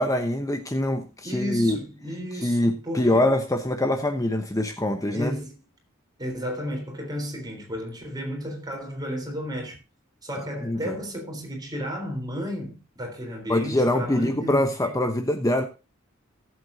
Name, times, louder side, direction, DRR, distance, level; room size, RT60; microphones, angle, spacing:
voice 1, 0.0-1.8 2.3-5.3 10.6-10.9 13.5-15.6, left 1 dB, 15° left, 0.9 m, -24 dB
voice 2, 1.2-3.3 5.1-5.6 6.2-9.8 10.2-14.9, equal, 20° right, 3.8 m, -33 dB
18.0 x 7.9 x 2.7 m
head